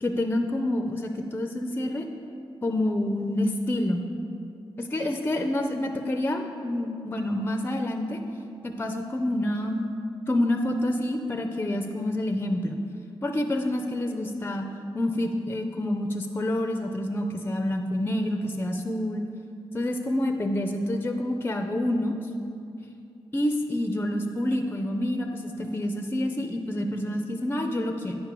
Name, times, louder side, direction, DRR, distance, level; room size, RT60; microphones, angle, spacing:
voice 1, 0.0-2.1 2.6-4.1 4.8-8.2 8.6-9.9 10.3-12.8 13.2-14.7 14.9-19.2 19.7-22.1 23.3-28.2, left 1 dB, 20° left, 4 dB, 0.4 m, -28 dB
9.0 x 5.3 x 3.0 m, 2.5 s
cardioid pair, 75°, 10 cm